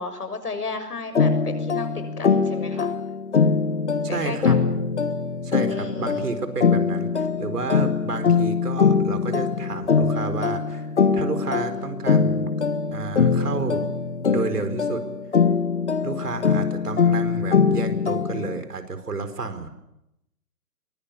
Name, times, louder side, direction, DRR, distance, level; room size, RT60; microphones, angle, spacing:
voice 1, 0.0-2.9 4.1-4.8 5.7-6.3, left 3 dB, 75° left, 8 dB, 6.7 m, -34 dB
sound 1, 1.1-18.6, left 5 dB, 45° left, 1.7 m, -22 dB
voice 2, 4.0-4.6 5.4-10.9 11.1-12.5 12.9-13.9 14.3-15.0 16.0-19.7, right 4 dB, 75° right, 9 dB, 4.8 m, -31 dB
23.5 x 22.0 x 8.6 m, 0.87 s
hypercardioid pair, 180°, 47 cm